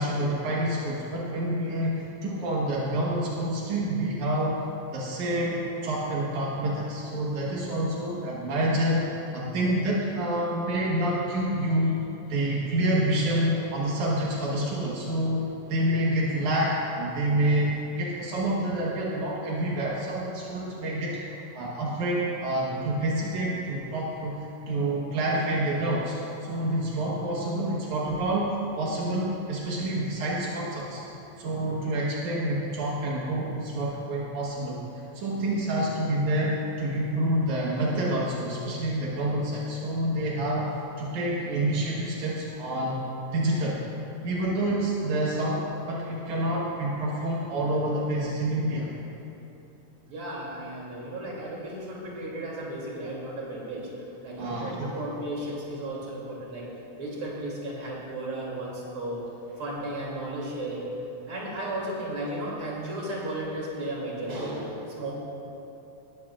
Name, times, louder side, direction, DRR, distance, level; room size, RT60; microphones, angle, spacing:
voice 1, 0.0-4.6 4.9-12.0 12.3-31.0 31.4-43.0 43.3-43.8 44.2-48.9 54.4-55.0, right 1 dB, 80° right, -4 dB, 2.7 m, -28 dB
voice 2, 50.0-56.7 57.0-59.2 59.6-60.9 61.3-65.1, right 1 dB, 45° right, -4 dB, 3.5 m, -34 dB
19.0 x 15.0 x 2.4 m, 3.0 s
omnidirectional pair, 3.3 m